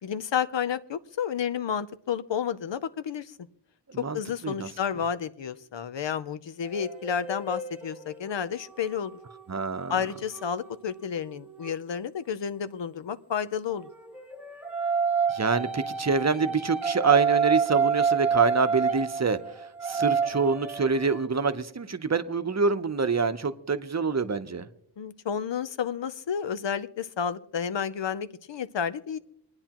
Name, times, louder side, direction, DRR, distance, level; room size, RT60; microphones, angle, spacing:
voice 1, 0.0-3.3 4.0-9.2 9.9-13.9 25.0-29.2, left 7 dB, 80° left, 0.7 m, -31 dB
sound 1, 6.6-11.8 13.7-21.2, right 6 dB, 5° right, 1.2 m, -29 dB
voice 2, 9.5-9.9 15.3-19.4 19.8-24.7, right 4 dB, 40° right, 0.8 m, -26 dB
28.0 x 9.7 x 3.0 m
wide cardioid pair, 75°, 43 cm